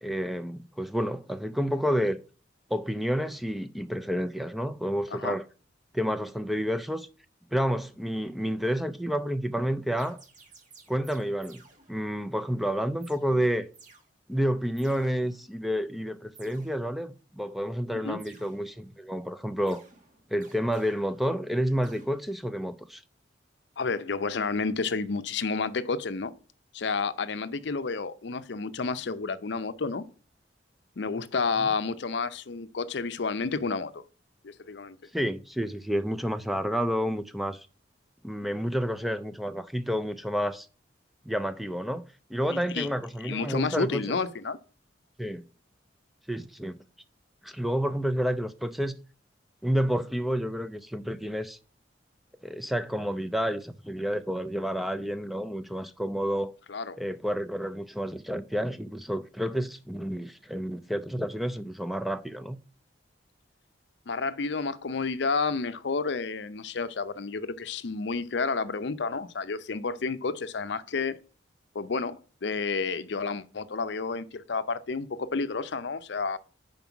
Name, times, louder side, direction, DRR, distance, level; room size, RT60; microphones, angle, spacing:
voice 1, 0.0-2.2 2.7-5.4 5.9-7.1 7.5-10.2 10.9-11.6 11.9-13.7 14.3-19.8 20.3-23.0 35.1-37.7 38.2-40.7 41.3-42.0 42.3-44.2 45.2-45.4 46.3-46.8 47.4-48.9 49.6-51.6 52.4-56.5 57.0-62.6, equal, ahead, 0.3 m, -30 dB
sound 1, 8.6-9.2 10.0-12.3 13.0-13.2 13.7-14.1 14.8-15.6 16.3-17.2 18.2-19.1 19.7-21.6 21.8-22.1, right 4 dB, 40° right, 1.3 m, -56 dB
voice 2, 23.8-26.3 26.7-30.0 31.0-34.0 34.4-35.0 42.5-42.9 43.2-44.6 56.7-57.0 64.1-71.2 71.7-76.4, left 4 dB, 65° left, 0.6 m, -30 dB
5.4 x 5.1 x 5.9 m
head